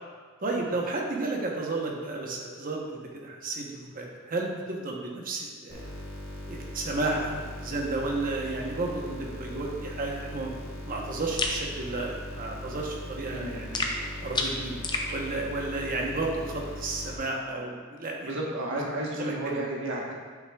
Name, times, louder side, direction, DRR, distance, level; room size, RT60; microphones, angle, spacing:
voice 1, 0.4-5.8 6.5-10.5 10.9-13.9 14.2-14.8 15.1-18.4 18.7-18.8 19.2-19.6, right 2 dB, 45° right, -1 dB, 0.9 m, -32 dB
sound 1, 5.7-17.2, left 1 dB, 85° left, 1.5 m, -40 dB
sound 2, 11.4-11.6 13.7-15.1, left 3 dB, 20° left, 0.5 m, -29 dB
voice 2, 13.3-13.6 18.2-20.1, right 1 dB, 65° right, -3 dB, 1.3 m, -32 dB
7.9 x 5.8 x 2.3 m, 1.5 s
head